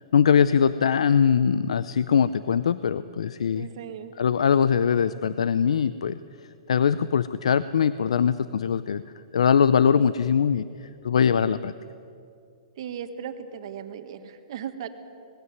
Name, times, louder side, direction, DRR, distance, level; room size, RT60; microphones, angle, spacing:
voice 1, 0.1-3.7 4.2-6.2 6.7-9.0 9.3-11.7, left 7 dB, 85° left, 15 dB, 0.5 m, -22 dB
voice 2, 3.5-4.1 12.8-14.9, right 8 dB, 60° right, 9 dB, 1.7 m, -37 dB
20.0 x 15.5 x 9.4 m, 2.5 s
hypercardioid pair, 140°, 3 cm